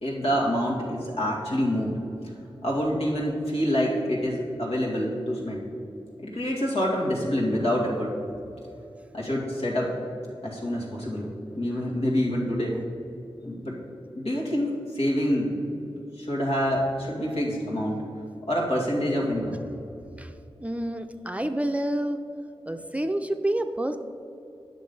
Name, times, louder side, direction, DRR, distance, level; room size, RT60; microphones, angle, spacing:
voice 1, 0.0-2.0 2.6-5.7 6.2-8.2 9.1-9.9 10.4-11.3 11.5-12.8 13.4-13.8 14.2-15.6 16.2-18.1 18.4-19.6, equal, 85° left, -3 dB, 2.1 m, -26 dB
voice 2, 20.6-22.3 22.7-24.0, right 1 dB, 15° right, 7 dB, 0.5 m, -28 dB
9.6 x 6.3 x 5.4 m, 2.8 s
wide cardioid pair, 70°, 10 cm